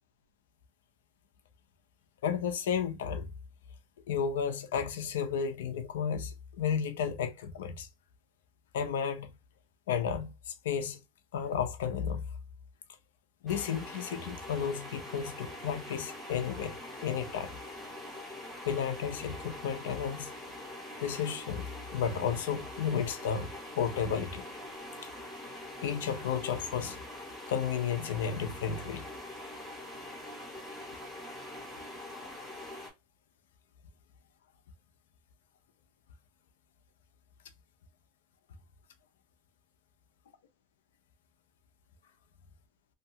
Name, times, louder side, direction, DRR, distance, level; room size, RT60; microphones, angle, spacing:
voice 1, 2.2-3.3 4.1-7.9 8.7-9.3 9.9-11.0 11.3-12.2 13.4-17.6 18.7-20.3 21.0-21.7 21.9-23.5 23.8-24.4 25.8-27.0 27.5-29.0 32.2-32.3, left 7 dB, 85° left, 0.6 m, -33 dB
sound 1, 13.5-32.9, left 1 dB, 5° left, 1.6 m, -44 dB
2.8 x 2.3 x 2.8 m
supercardioid pair, 130°, 0 cm